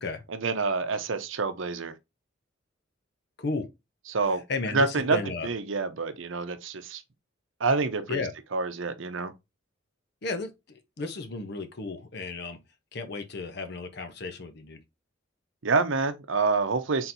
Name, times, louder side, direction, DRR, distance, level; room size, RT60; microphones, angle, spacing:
voice 1, 0.3-1.9 4.1-4.4 4.7-7.0 7.6-8.2 8.5-9.3 15.6-17.1, right 4 dB, 70° right, 0.7 m, -27 dB
voice 2, 4.5-5.5 8.1-8.3 10.2-12.6 12.9-14.8, left 3 dB, 55° left, 0.8 m, -34 dB
4.3 x 3.8 x 2.6 m
head